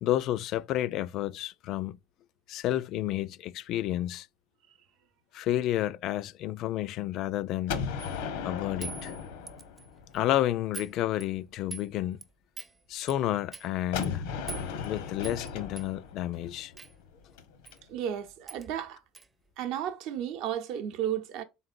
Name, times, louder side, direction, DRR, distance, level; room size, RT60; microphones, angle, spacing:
voice 1, 0.0-2.0 2.5-4.3 5.3-7.8 8.4-9.1 10.1-12.2 12.9-14.2 14.8-16.7, left 13 dB, 60° left, 0.3 m, -30 dB
Gunshot gunfire, 7.7-10.5 13.9-17.7, left 6 dB, 85° left, 0.8 m, -36 dB
sound 1, 8.0-8.2 8.8-9.9 10.1-10.3 10.7-10.9 11.2-11.9 12.2-12.3 12.6-12.7 13.1-13.2 13.5-13.7 14.0-14.1 14.5-14.9 15.2-15.5 15.8-15.9 16.8-16.9 17.7-17.8 18.0-18.1 18.5-18.7 19.1-19.3, right 5 dB, 25° right, 0.5 m, -43 dB
voice 2, 17.9-19.0 19.6-21.4, right 10 dB, 70° right, 0.7 m, -33 dB
3.9 x 3.7 x 2.4 m
supercardioid pair, 95°, 0 cm